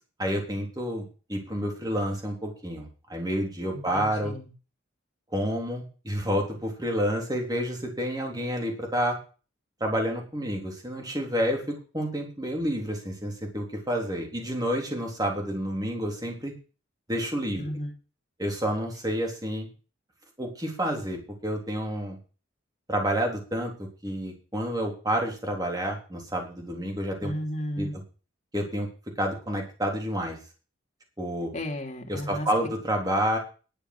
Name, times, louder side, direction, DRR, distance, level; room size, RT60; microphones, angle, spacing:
voice 1, 0.2-4.3 5.3-9.2 9.8-16.5 17.1-17.6 18.4-19.7 20.4-22.2 22.9-27.3 27.8-27.9 28.5-28.9 29.2-30.4 31.2-31.5 32.1-33.4, equal, 20° right, 1 dB, 3.5 m, -29 dB
voice 2, 3.7-4.5 17.5-17.9 27.2-27.9 31.5-32.5, left 1 dB, 35° left, 2 dB, 3.2 m, -34 dB
11.5 x 8.2 x 6.2 m, 0.35 s
head